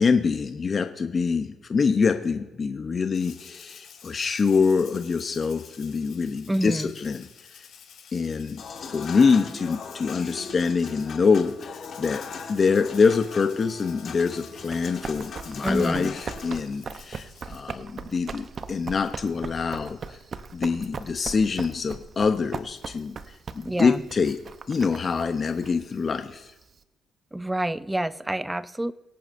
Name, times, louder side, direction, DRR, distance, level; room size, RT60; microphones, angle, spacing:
voice 1, 0.0-7.7 8.1-8.6 8.9-12.2 12.5-20.2 20.5-24.4 24.7-26.5, left 5 dB, 40° left, 0.6 m, -25 dB
Rattle (instrument), 3.1-17.7, left 8 dB, 80° left, 4.8 m, -50 dB
voice 2, 6.5-6.9 15.6-16.1 23.6-24.0 27.3-28.9, right 1 dB, 10° right, 0.4 m, -28 dB
Human voice / Acoustic guitar / Piano, 8.6-16.6, left 5 dB, 60° left, 1.9 m, -40 dB
Run, 14.5-26.8, right 5 dB, 45° right, 0.7 m, -39 dB
24.5 x 8.6 x 2.6 m
cardioid pair, 90°, 0 cm